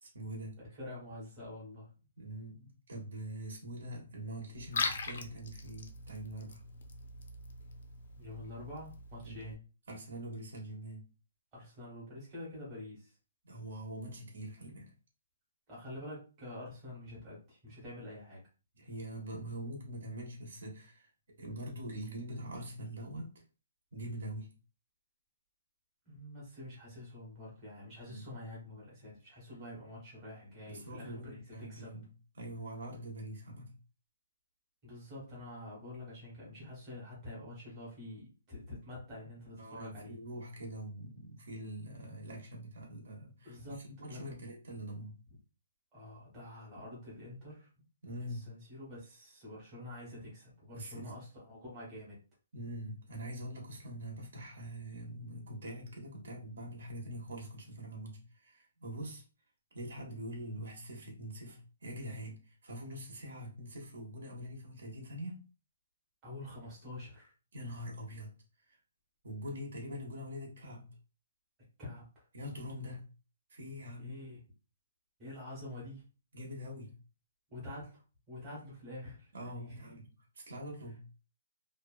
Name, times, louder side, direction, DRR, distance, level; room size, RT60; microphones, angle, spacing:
voice 1, 0.0-0.6 2.2-6.6 9.2-9.5 9.9-11.0 13.4-14.9 18.7-21.1 21.4-23.3 23.9-24.5 28.1-28.3 30.7-32.1 32.3-33.7 39.6-45.2 48.0-48.5 50.7-51.1 52.5-59.2 59.7-65.4 67.5-68.3 68.7-68.8 69.2-70.9 72.3-73.1 73.5-74.1 76.3-76.9 79.3-80.1 80.3-81.0, right 1 dB, 60° right, 0 dB, 0.9 m, -44 dB
voice 2, 0.6-1.9 8.2-9.6 11.5-13.1 15.7-18.4 26.0-31.9 34.8-40.1 43.4-44.3 45.9-47.7 48.3-52.2 66.2-67.3 71.8-72.3 74.0-74.4 75.2-76.0 77.5-78.0 78.3-80.0, left 1 dB, 15° right, -7 dB, 1.0 m, -47 dB
Liquid, 4.5-9.5, left 4 dB, 50° left, 0.4 m, -41 dB
2.7 x 2.1 x 2.3 m, 0.34 s
hypercardioid pair, 175°, 0 cm